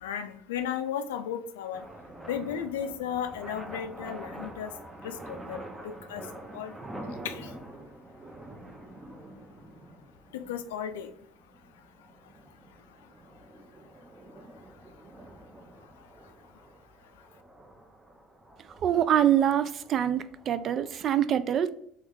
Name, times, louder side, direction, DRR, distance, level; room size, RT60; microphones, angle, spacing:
voice 1, 0.0-1.8 2.3-4.7 5.0-5.6 5.8-6.2 6.5-6.7 7.2-7.5 10.5-11.1, left 8 dB, 80° left, 0.4 m, -34 dB
sound 1, 1.7-21.1, right 1 dB, 15° right, 0.7 m, -46 dB
voice 2, 18.8-21.7, right 10 dB, 45° right, 0.3 m, -25 dB
3.2 x 3.0 x 3.6 m
hypercardioid pair, 70°, 0 cm